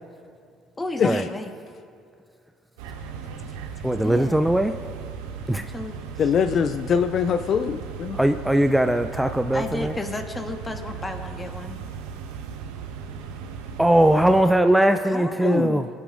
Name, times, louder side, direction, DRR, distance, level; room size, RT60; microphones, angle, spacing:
voice 1, 0.8-1.5 3.1-3.4 4.0-4.5 5.5-6.1 9.5-11.8 15.0-15.7, left 2 dB, 20° left, 5 dB, 1.4 m, -33 dB
sound 1, 2.8-14.4, right 6 dB, 80° right, 0.9 m, -37 dB
voice 2, 3.8-4.7 5.5-5.7 8.1-9.9 13.8-15.9, right 1 dB, 5° right, 8 dB, 0.4 m, -20 dB
voice 3, 6.2-8.2 15.4-15.9, left 7 dB, 50° left, 9 dB, 0.4 m, -23 dB
21.0 x 10.5 x 2.6 m, 2.4 s
hypercardioid pair, 65°, 0 cm